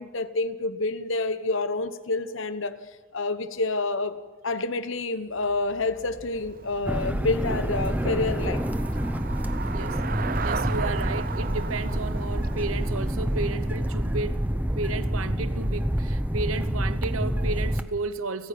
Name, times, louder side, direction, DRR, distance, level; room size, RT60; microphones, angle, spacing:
voice 1, 0.0-2.7 3.1-8.6, left 3 dB, 70° left, 1.1 m, -28 dB
Traffic noise roadway noise / Bicycle, 5.4-14.5, right 5 dB, 45° right, 0.6 m, -37 dB
sound 1, 6.9-17.8, equal, 10° right, 0.8 m, -27 dB
voice 2, 10.4-18.5, right 3 dB, 90° right, 1.0 m, -33 dB
30.0 x 10.0 x 8.5 m
head